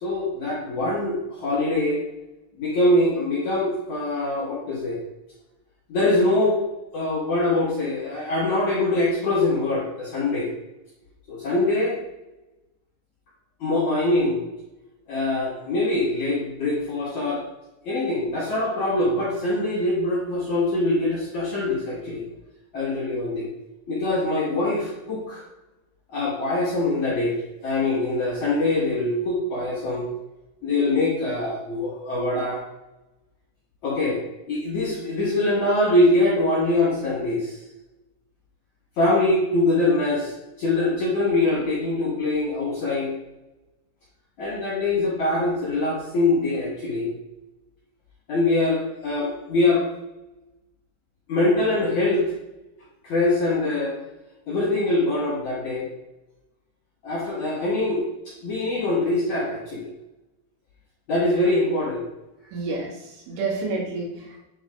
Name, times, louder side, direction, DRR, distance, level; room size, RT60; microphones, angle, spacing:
voice 1, 0.0-2.0 2.6-5.0 5.9-6.6 6.9-10.5 11.3-12.0 13.6-14.4 15.1-17.4 17.8-22.2 22.7-23.5 23.9-25.4 26.1-27.3 27.6-30.1 30.6-32.6 33.8-34.2 34.5-37.6 39.0-40.3 40.6-43.1 44.4-47.1 48.3-49.8 51.3-52.3 53.0-53.9 54.5-55.9 57.0-59.9 61.1-62.0, left 2 dB, 60° left, -7 dB, 2.1 m, -23 dB
voice 2, 62.5-64.4, right 3 dB, 80° right, -2 dB, 4.1 m, -29 dB
9.0 x 4.2 x 3.9 m, 0.97 s
omnidirectional pair, 5.6 m